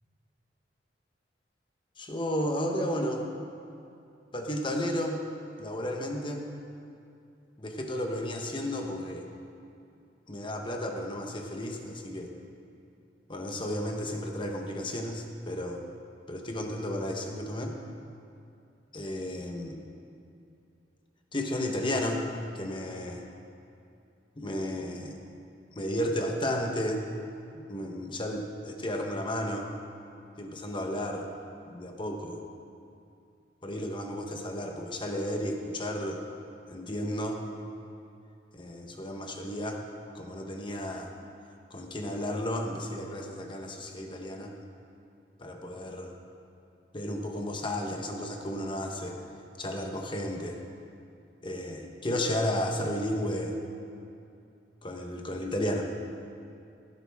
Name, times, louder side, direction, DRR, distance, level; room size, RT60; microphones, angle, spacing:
voice 1, 2.0-3.3 4.3-5.2 5.6-6.5 7.6-9.3 10.3-12.3 13.3-15.8 16.3-17.8 18.9-19.8 21.3-22.3 22.5-23.2 24.4-25.2 25.7-27.0 27.5-29.7 30.4-31.3 31.7-32.4 33.6-36.2 36.7-37.4 38.5-39.8 40.1-41.1 41.7-44.5 45.4-46.1 46.9-49.2 49.6-50.6 51.4-53.6 54.8-55.9, left 1 dB, 30° left, 2 dB, 1.2 m, -33 dB
16.0 x 11.5 x 3.6 m, 2.6 s
head